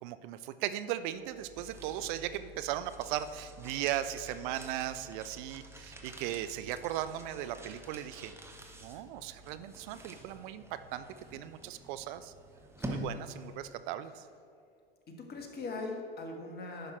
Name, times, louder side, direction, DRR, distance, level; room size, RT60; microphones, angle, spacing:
voice 1, 0.0-8.3 8.8-11.1 11.3-12.3 12.9-14.2, right 12 dB, 55° right, 12 dB, 0.5 m, -37 dB
sound 1, 1.2-13.7, equal, 10° right, 1.0 m, -48 dB
voice 2, 12.8-13.1 15.1-16.9, left 3 dB, 35° left, 3 dB, 1.5 m, -41 dB
10.0 x 5.6 x 4.4 m, 2.4 s
hypercardioid pair, 85°, 30 cm